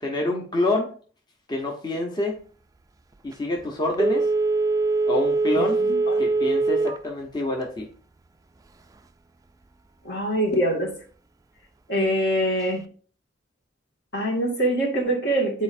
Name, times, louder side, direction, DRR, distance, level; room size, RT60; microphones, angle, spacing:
voice 1, 0.0-0.9 1.5-2.4 3.2-4.3 5.1-5.8 6.2-7.9, left 1 dB, 25° left, -1 dB, 0.9 m, -27 dB
Telephone, 3.9-7.1 7.5-7.6, right 3 dB, 20° right, 0.3 m, -22 dB
voice 2, 5.6-6.1 10.0-10.9 11.9-12.9 14.1-15.6, right 1 dB, 60° left, -1 dB, 2.1 m, -24 dB
9.5 x 4.2 x 2.6 m, 0.42 s
head